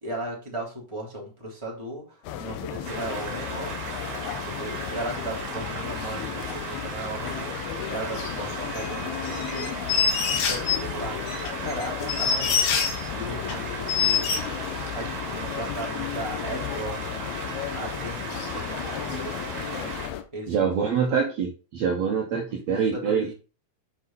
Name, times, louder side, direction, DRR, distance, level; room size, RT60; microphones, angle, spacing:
voice 1, 0.0-3.9 4.3-9.7 10.3-11.2 11.6-12.6 13.1-14.3 14.9-17.2 17.7-19.9 20.3-21.2 22.5-23.3, right 1 dB, 10° right, -3 dB, 2.8 m, -37 dB
sound 1, 2.2-20.2, left 10 dB, 75° left, 2.5 m, -34 dB
sound 2, 2.9-20.1, right 4 dB, 60° right, 3.5 m, -36 dB
sound 3, 9.2-10.8 11.3-13.0 13.5-13.6 13.9-14.4, left 6 dB, 90° left, 4.1 m, -24 dB
voice 2, 20.5-23.3, right 6 dB, 75° right, 0 dB, 1.5 m, -25 dB
8.5 x 5.3 x 4.2 m, 0.34 s
omnidirectional pair, 5.1 m